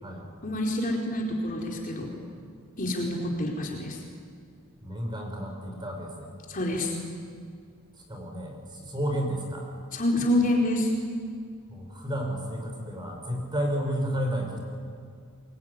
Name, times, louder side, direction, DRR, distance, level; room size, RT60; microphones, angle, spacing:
voice 1, 0.4-2.1 2.8-4.0 6.5-7.0 9.9-10.9, left 1 dB, 40° left, 0 dB, 4.3 m, -27 dB
voice 2, 4.8-6.3 8.1-9.7 11.7-14.6, equal, 20° right, 1 dB, 5.7 m, -31 dB
26.0 x 22.0 x 9.8 m, 2.2 s
head